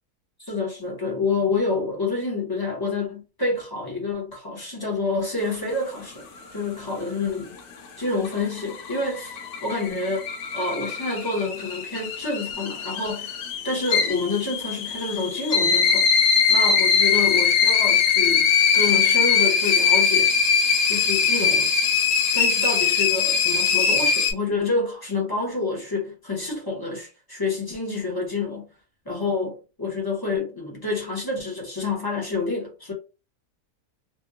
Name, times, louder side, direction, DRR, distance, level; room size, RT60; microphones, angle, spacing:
voice 1, 0.5-6.2 6.5-7.6 8.0-10.3 10.5-13.3 13.6-16.1 16.5-20.4 20.9-21.7 22.3-28.7 29.1-32.9, left 3 dB, 25° left, 0.4 m, -28 dB
sound 1, 8.0-24.3, left 6 dB, 80° left, 1.2 m, -21 dB
2.9 x 2.2 x 2.3 m
omnidirectional pair, 1.6 m